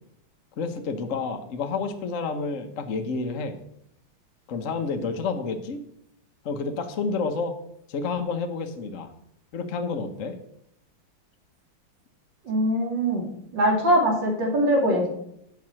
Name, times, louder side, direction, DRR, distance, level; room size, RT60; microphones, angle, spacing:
voice 1, 0.6-3.6 4.5-5.8 6.4-7.5 7.9-9.1 9.5-10.4, left 4 dB, 55° left, 5 dB, 0.9 m, -29 dB
voice 2, 12.4-15.1, equal, 55° right, 0 dB, 3.1 m, -22 dB
7.8 x 5.7 x 7.3 m, 0.73 s
omnidirectional pair, 2.4 m